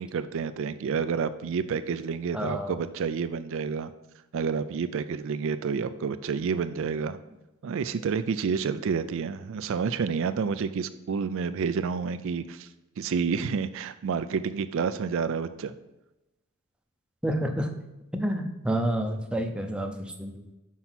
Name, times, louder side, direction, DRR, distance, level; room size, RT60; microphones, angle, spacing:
voice 1, 0.0-3.9 4.3-7.2 7.6-12.7 13.0-15.7, right 6 dB, 60° right, 11 dB, 0.4 m, -29 dB
voice 2, 2.3-2.8 17.2-17.7 18.1-20.6, right 1 dB, 5° right, 4 dB, 0.6 m, -29 dB
6.1 x 5.5 x 5.7 m, 0.99 s
head